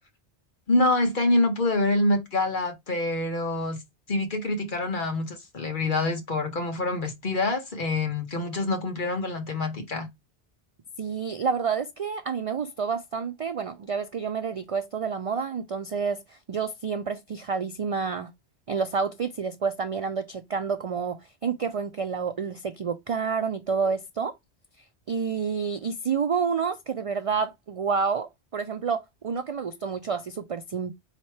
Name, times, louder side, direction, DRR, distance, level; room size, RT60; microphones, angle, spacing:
voice 1, 0.7-3.8 4.1-10.1, left 2 dB, 50° left, 1.2 m, -26 dB
voice 2, 11.0-18.3 18.7-24.4 25.1-30.9, right 6 dB, 60° right, 0.3 m, -29 dB
4.3 x 3.2 x 3.1 m
omnidirectional pair, 1.1 m